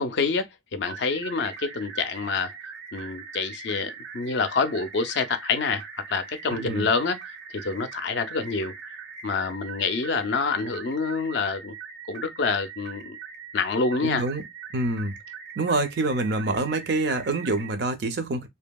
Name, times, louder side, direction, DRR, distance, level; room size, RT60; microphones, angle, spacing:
voice 1, 0.0-2.5 2.9-7.2 7.5-8.7 9.2-11.7 12.1-13.2 13.5-14.2, left 4 dB, 60° left, 0.4 m, -27 dB
sound 1, 0.8-17.7, right 6 dB, 90° right, 1.0 m, -41 dB
voice 2, 14.0-14.4 14.7-15.2 15.6-18.5, right 2 dB, 55° right, 0.5 m, -26 dB
2.7 x 2.6 x 2.2 m
head